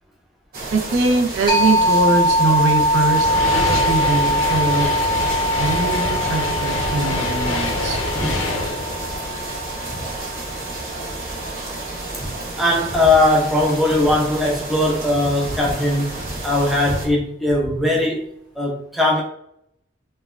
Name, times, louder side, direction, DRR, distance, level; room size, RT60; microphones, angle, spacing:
sound 1, 0.5-17.1, right 2 dB, 45° right, 0.9 m, -31 dB
voice 1, 0.7-3.3 3.7-5.1 5.6-8.0, right 2 dB, 70° right, 3 dB, 0.4 m, -22 dB
sound 2, 1.5-10.9, equal, 20° right, 0.8 m, -22 dB
sound 3, 2.7-10.2, left 2 dB, 75° left, 0.5 m, -26 dB
voice 2, 12.6-18.2 18.6-19.2, left 1 dB, ahead, -3 dB, 0.4 m, -19 dB
3.1 x 2.1 x 2.4 m, 0.72 s
head